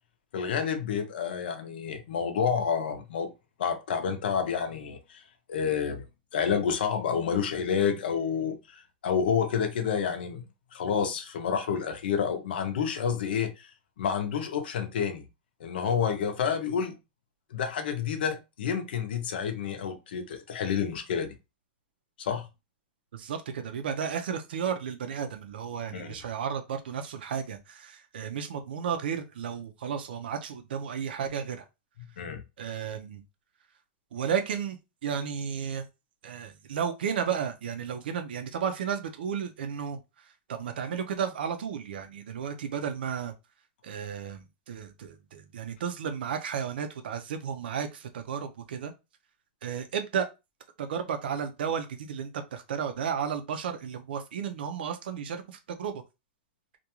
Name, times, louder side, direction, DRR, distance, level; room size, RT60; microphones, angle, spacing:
voice 1, 0.3-3.3 3.6-5.2 5.5-6.0 6.3-8.6 9.0-10.4 10.7-13.7 14.0-15.3 15.6-17.0 17.5-21.3 22.2-22.5 25.9-26.1 32.2-32.4, left 7 dB, 75° left, 0.6 m, -29 dB
voice 2, 23.1-31.7 32.6-33.2 34.1-35.8 36.2-43.3 43.8-48.9 49.6-50.3 50.8-56.0, right 7 dB, 80° right, 0.5 m, -33 dB
2.5 x 2.2 x 2.8 m
supercardioid pair, 145°, 5 cm